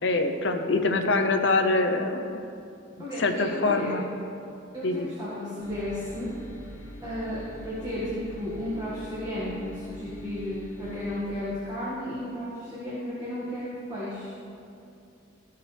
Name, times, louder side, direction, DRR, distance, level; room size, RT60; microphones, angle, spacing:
voice 1, 0.0-2.5 3.2-4.0 4.8-5.1, left 3 dB, 70° left, 6 dB, 0.7 m, -24 dB
voice 2, 3.0-4.0 4.7-6.3 7.0-14.4, left 1 dB, 20° right, -10 dB, 1.8 m, -34 dB
sound 1, 5.6-11.2, equal, 90° left, 1.6 m, -43 dB
15.0 x 5.7 x 3.4 m, 2.6 s
head